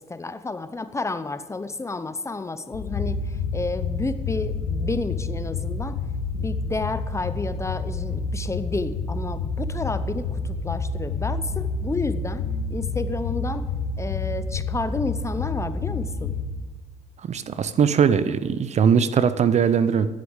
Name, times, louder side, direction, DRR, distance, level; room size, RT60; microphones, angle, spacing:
voice 1, 0.0-6.0 6.3-12.4 12.7-13.6 14.0-16.3, left 3 dB, 15° left, 11 dB, 0.7 m, -31 dB
sound 1, 2.7-16.4, left 4 dB, 80° left, 1.7 m, -29 dB
voice 2, 17.3-20.1, right 7 dB, 40° right, 14 dB, 0.6 m, -20 dB
10.5 x 7.8 x 8.1 m, 1.4 s
cardioid pair, 110°, 17 cm